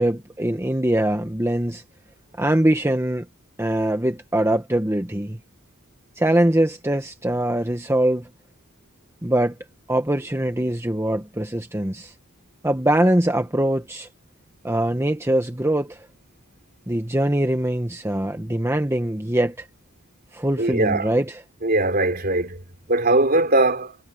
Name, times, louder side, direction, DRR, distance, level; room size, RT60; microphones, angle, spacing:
voice 1, 0.0-1.8 2.4-3.2 3.6-5.4 6.2-8.3 9.2-9.5 9.9-12.1 12.6-14.1 14.6-16.1 16.9-19.7 20.3-21.4, right 1 dB, 10° right, 1.2 m, -22 dB
voice 2, 20.6-21.1 21.6-22.6 22.9-24.0, right 2 dB, 45° right, 3.9 m, -20 dB
head